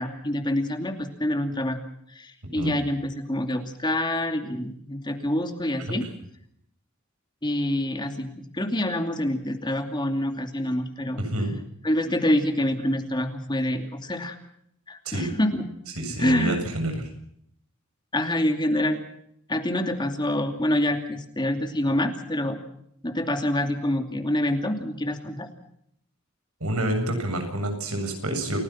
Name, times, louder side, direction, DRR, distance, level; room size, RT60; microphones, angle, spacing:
voice 1, 0.0-1.8 2.1-6.0 7.4-11.2 11.8-14.4 14.9-15.6 16.2-16.6 18.1-19.0 19.5-22.6 23.0-25.5, left 1 dB, 20° left, 5 dB, 2.6 m, -26 dB
voice 2, 5.8-6.1 11.2-11.5 15.0-15.3 16.0-17.1 26.6-28.6, right 1 dB, 85° right, 6 dB, 7.7 m, -28 dB
29.5 x 18.0 x 5.9 m, 0.70 s
head